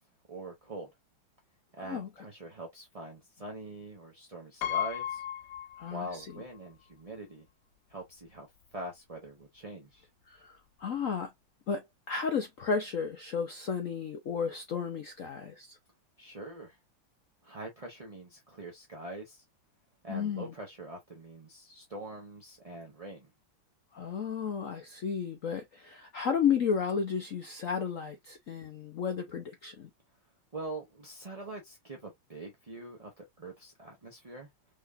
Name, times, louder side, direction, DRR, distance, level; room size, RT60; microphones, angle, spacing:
voice 1, 0.3-0.9 1.7-5.2 5.9-7.5 7.9-8.5 8.7-10.1 16.2-16.8 17.4-19.4 20.0-23.3 30.5-34.5, right 2 dB, 25° right, 0.7 m, -44 dB
Piano, 4.6-6.4 6.8-6.9 8.0-8.1 8.4-8.7, left 10 dB, 90° left, 1.7 m, -35 dB
voice 2, 5.8-6.3 10.3-11.3 11.7-15.8 20.1-20.5 23.9-29.9, left 6 dB, 70° left, 0.7 m, -33 dB
4.9 x 3.7 x 2.5 m
omnidirectional pair, 2.4 m